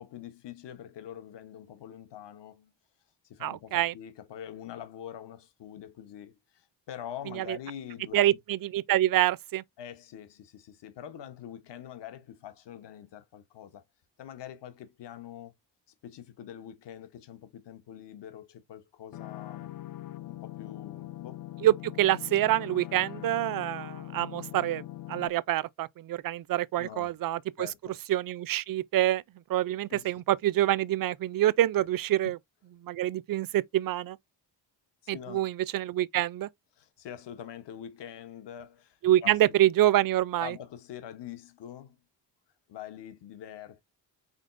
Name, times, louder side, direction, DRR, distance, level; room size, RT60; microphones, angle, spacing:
voice 1, 0.0-2.7 3.2-8.4 9.8-13.8 14.2-15.5 16.0-19.7 20.3-21.4 26.8-27.2 27.6-28.0 29.9-30.1 31.8-31.9 35.1-35.5 36.8-39.4 40.4-42.0 42.7-43.8, left 10 dB, 70° left, 1.0 m, -44 dB
voice 2, 3.4-3.9 7.3-7.6 8.1-9.6 21.6-24.8 25.1-27.7 28.1-29.2 29.5-32.4 32.8-34.2 35.1-36.5 39.0-40.6, right 13 dB, 50° right, 0.4 m, -26 dB
sound 1, 19.1-25.3, left 15 dB, 50° left, 0.5 m, -42 dB
5.1 x 3.8 x 2.5 m
cardioid pair, 110°, 44 cm